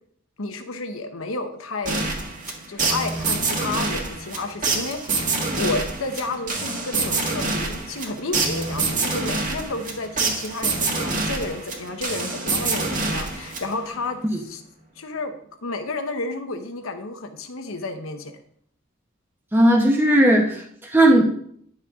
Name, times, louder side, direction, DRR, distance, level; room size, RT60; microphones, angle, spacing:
voice 1, 0.4-2.1 2.7-14.6 15.0-15.3 15.6-18.4, left 3 dB, 90° left, 7 dB, 0.9 m, -31 dB
sound 1, 1.9-14.0, right 3 dB, 40° right, 1.7 m, -26 dB
voice 2, 19.5-21.2, right 1 dB, 10° right, 0 dB, 1.0 m, -16 dB
10.5 x 6.5 x 3.6 m, 0.64 s
head